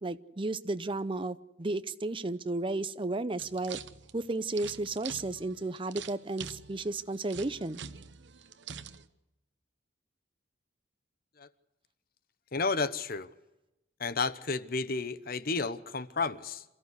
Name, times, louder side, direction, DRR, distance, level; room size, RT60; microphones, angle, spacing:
voice 1, 0.0-3.8 4.1-7.8, right 2 dB, 30° right, 0.7 m, -33 dB
sound 1, 3.4-9.1, right 7 dB, 70° right, 1.0 m, -45 dB
voice 2, 12.5-13.3 14.0-16.6, left 4 dB, 50° left, 1.0 m, -32 dB
28.0 x 14.0 x 8.1 m
head